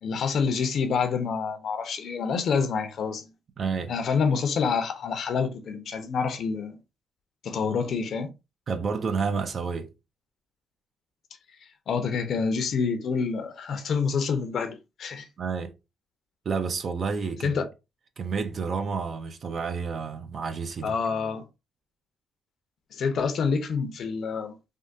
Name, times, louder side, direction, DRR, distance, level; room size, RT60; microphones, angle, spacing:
voice 1, 0.0-3.3 3.9-6.8 7.4-8.3 11.9-15.3 17.4-17.6 20.8-21.4 22.9-24.6, left 5 dB, 60° left, 0.6 m, -27 dB
voice 2, 3.6-3.9 8.7-9.9 15.4-15.7 16.5-17.6 18.2-21.0, right 5 dB, 50° right, 0.5 m, -30 dB
3.5 x 2.2 x 2.5 m
cardioid pair, 90°, 0 cm